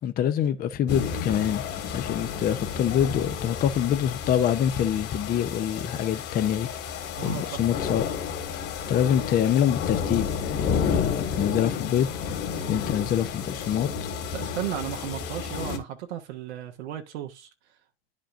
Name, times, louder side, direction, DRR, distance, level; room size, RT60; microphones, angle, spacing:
voice 1, 0.0-6.7 7.2-8.0 8.9-12.4 12.7-14.1, left 9 dB, 25° left, 0.6 m, -25 dB
sound 1, 0.9-15.8, left 6 dB, 40° left, 2.0 m, -31 dB
voice 2, 7.2-7.6 14.3-17.5, right 11 dB, 75° right, 1.2 m, -34 dB
9.9 x 5.2 x 2.5 m
hypercardioid pair, 105°, 34 cm